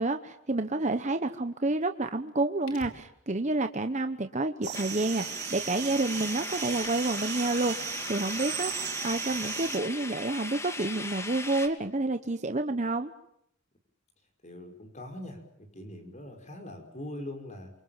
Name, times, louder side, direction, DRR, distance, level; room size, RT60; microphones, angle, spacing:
voice 1, 0.0-13.1, right 2 dB, 35° right, 8 dB, 1.0 m, -29 dB
sound 1, 2.7-3.0 4.7-4.9 6.7-7.0 8.7-8.9, left 2 dB, 70° left, 5.1 m, -44 dB
sound 2, 4.6-9.8, right 10 dB, 50° right, 3.7 m, -36 dB
sound 3, 4.7-11.7, left 2 dB, 15° left, 2.3 m, -38 dB
voice 2, 14.4-17.7, left 1 dB, 35° left, 4 dB, 5.4 m, -42 dB
27.5 x 25.0 x 7.4 m, 0.74 s
head